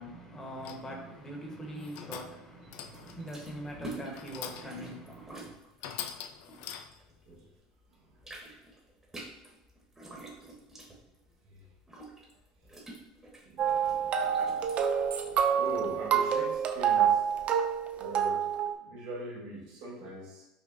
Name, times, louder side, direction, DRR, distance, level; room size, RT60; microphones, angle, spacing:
voice 1, 0.0-5.5, right 1 dB, 20° left, 1.0 m, -42 dB
sound 1, 0.6-1.0 1.7-2.4 2.7-3.3 4.1-4.8 5.3-5.4 5.8-7.1, left 9 dB, 70° left, 0.3 m, -43 dB
sound 2, 2.9-7.5 7.8-15.8, right 2 dB, 15° right, 1.1 m, -48 dB
voice 2, 7.9-8.2 11.5-11.7 13.4-14.5 15.5-17.3 18.0-20.5, right 1 dB, 70° right, 1.1 m, -42 dB
sound 3, 13.6-18.7, right 8 dB, 45° right, 0.4 m, -27 dB
5.5 x 2.1 x 2.5 m
supercardioid pair, 100°, 3 cm